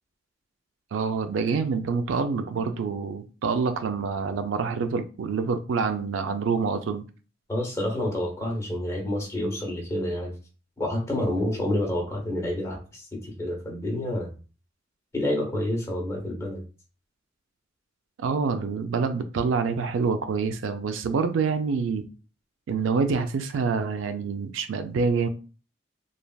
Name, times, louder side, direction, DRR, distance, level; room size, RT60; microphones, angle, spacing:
voice 1, 0.9-7.0 18.2-22.1 22.7-25.3, right 5 dB, 75° right, 0.4 m, -26 dB
voice 2, 7.5-10.3 10.8-14.3 15.1-16.6, left 1 dB, 15° left, 0.9 m, -28 dB
3.1 x 2.5 x 2.2 m
head